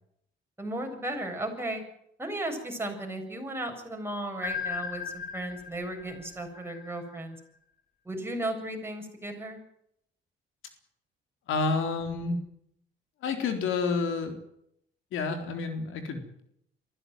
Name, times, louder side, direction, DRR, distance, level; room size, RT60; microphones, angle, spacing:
voice 1, 0.6-1.8 2.2-7.4 8.1-9.6, right 1 dB, 10° right, 2 dB, 7.4 m, -35 dB
sound 1, 4.4-7.4, left 6 dB, 45° left, 2.3 m, -37 dB
voice 2, 11.5-12.4 13.2-14.4 15.1-16.2, left 4 dB, 85° left, 7 dB, 4.1 m, -29 dB
22.5 x 15.5 x 9.4 m, 0.74 s
cardioid pair, 90°, 20 cm